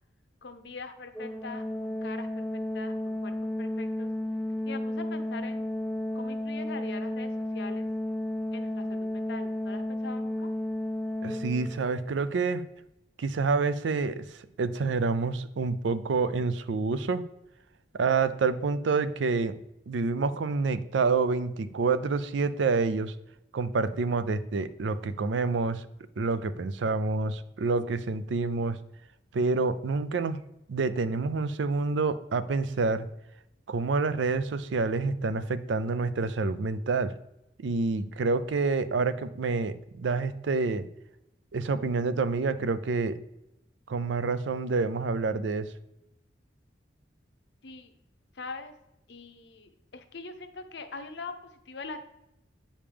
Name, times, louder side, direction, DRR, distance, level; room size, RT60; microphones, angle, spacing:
voice 1, 0.4-4.1 4.6-5.7 6.1-7.9 8.5-10.5 47.6-47.9 48.3-48.7 49.1-52.0, left 4 dB, 70° left, 8 dB, 0.7 m, -43 dB
Organ, 1.1-12.0, left 1 dB, ahead, 0.3 m, -33 dB
voice 2, 11.2-12.6 13.2-14.2 14.6-17.2 17.9-19.5 19.9-23.1 23.5-25.9 26.2-28.8 29.3-30.4 30.7-33.1 33.7-37.1 37.6-40.9 41.5-43.2 43.9-45.7, right 4 dB, 80° right, 14 dB, 0.4 m, -28 dB
8.7 x 5.2 x 3.4 m, 0.86 s
head